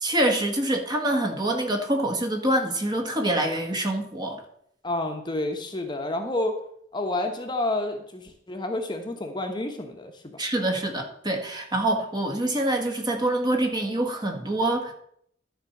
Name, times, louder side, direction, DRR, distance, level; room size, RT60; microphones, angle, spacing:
voice 1, 0.0-4.4 10.4-14.9, right 1 dB, 25° right, 3 dB, 1.4 m, -25 dB
voice 2, 4.8-6.6 6.9-10.3, left 2 dB, 25° left, 4 dB, 1.1 m, -29 dB
12.0 x 4.4 x 7.1 m, 0.70 s
head